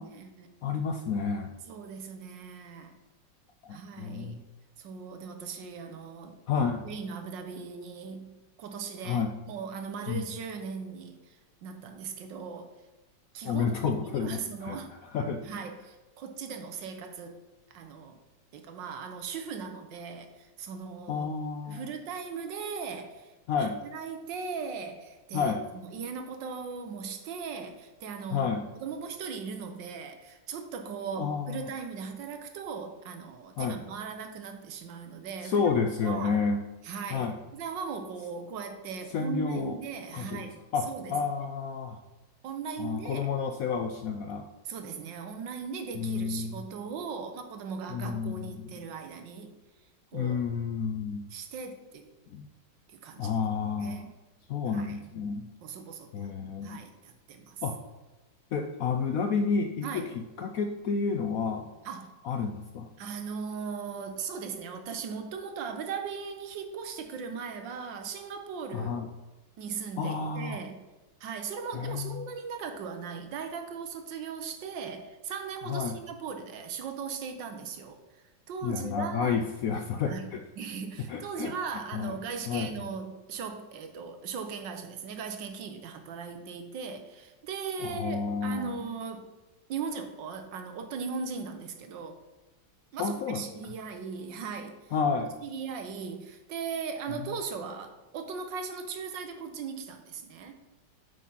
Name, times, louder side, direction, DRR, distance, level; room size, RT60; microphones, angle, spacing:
voice 1, 0.0-0.5 1.7-2.9 3.7-4.4 4.8-6.4 6.8-12.7 13.3-14.9 15.4-17.4 17.7-18.2 18.5-21.3 21.6-28.5 28.8-35.7 36.0-36.4 36.8-40.6 40.9-41.1 42.4-43.3 44.6-49.5 50.1-50.4 51.3-52.1 52.9-53.3 53.8-54.1 54.7-55.0 55.6-56.3 56.6-57.6 59.8-60.1 61.8-62.1 63.0-69.0 69.6-70.8 71.2-79.5 80.1-80.3 80.6-89.3 89.7-92.2 92.9-94.9 95.4-100.6, right 5 dB, 80° right, 6 dB, 1.6 m, -38 dB
voice 2, 0.6-1.5 3.6-4.4 6.5-6.9 9.0-9.3 10.1-10.3 13.4-15.6 21.1-21.9 23.5-23.8 25.3-25.7 28.3-28.6 31.2-31.7 33.6-33.8 35.4-36.6 37.1-37.4 39.1-39.8 40.1-40.5 40.7-42.0 42.8-44.5 45.9-46.6 47.9-48.9 50.1-51.3 52.3-52.5 53.2-54.1 54.5-55.5 56.1-56.8 57.6-57.8 58.5-60.0 60.4-61.7 62.2-62.9 68.7-69.1 70.0-70.6 71.7-72.2 75.7-76.0 78.6-80.4 81.1-82.1 82.5-82.8 87.8-88.9 93.0-93.4 94.9-95.4 97.1-97.2, left 5 dB, 70° left, 6 dB, 0.8 m, -30 dB
8.5 x 5.0 x 5.4 m, 1.1 s
omnidirectional pair, 2.0 m